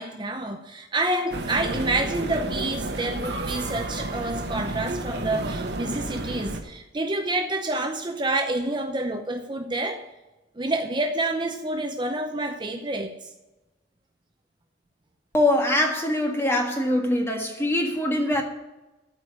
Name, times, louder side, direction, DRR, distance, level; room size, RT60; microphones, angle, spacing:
voice 1, 0.0-10.0 10.6-13.1, right 2 dB, 25° right, 4 dB, 0.7 m, -28 dB
sound 1, 1.3-6.6, right 2 dB, 65° right, 1.2 m, -31 dB
voice 2, 15.3-18.4, left 1 dB, 15° left, 2 dB, 1.6 m, -23 dB
13.5 x 4.9 x 8.3 m, 1.1 s
head